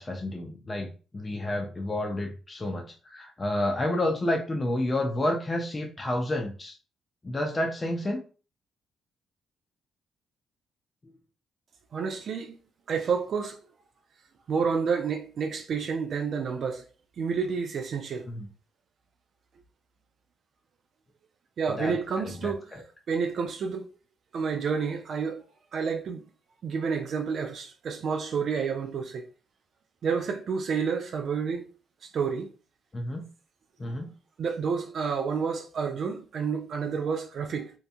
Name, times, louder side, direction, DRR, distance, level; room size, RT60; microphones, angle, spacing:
voice 1, 0.0-6.7 7.2-8.2 18.3-18.4 21.8-21.9 22.4-22.8 32.9-33.2 33.8-34.1, left 1 dB, 30° left, 0.5 m, -30 dB
voice 2, 11.9-12.6 12.9-13.6 14.5-16.8 17.2-18.3 21.6-22.8 23.1-23.9 24.3-25.4 25.7-26.3 26.6-29.3 30.0-31.7 32.0-32.5 34.4-37.7, right 5 dB, 60° right, 0.3 m, -29 dB
2.8 x 2.1 x 2.5 m
supercardioid pair, 70°, 0 cm